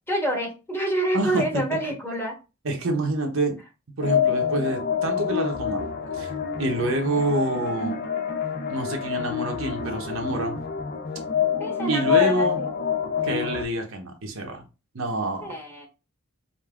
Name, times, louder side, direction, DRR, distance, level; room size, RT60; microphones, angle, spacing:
voice 1, 0.1-2.3 11.6-12.7 15.4-15.9, right 1 dB, 10° left, -1 dB, 1.1 m, -27 dB
voice 2, 1.1-1.6 2.6-3.6 4.0-5.9 6.1-6.3 6.6-8.0 8.7-10.6 11.9-12.6 13.2-14.6 14.9-15.5, right 2 dB, 75° right, 3 dB, 0.9 m, -27 dB
sound 1, 4.0-13.6, left 8 dB, 50° left, 0.5 m, -27 dB
5.1 x 2.6 x 2.4 m, 0.30 s
head